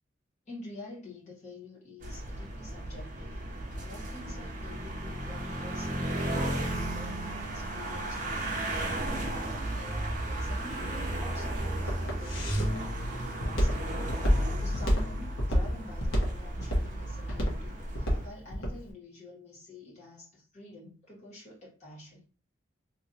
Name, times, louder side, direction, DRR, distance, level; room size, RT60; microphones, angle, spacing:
voice 1, 0.5-3.4 3.8-8.8 9.7-22.3, left 2 dB, 35° left, -6 dB, 1.7 m, -48 dB
sound 1, 2.0-18.3, right 1 dB, 40° right, 0.6 m, -34 dB
Walk footsteps, 10.6-18.8, equal, 85° left, 1.1 m, -29 dB
3.0 x 2.9 x 2.7 m, 0.37 s
head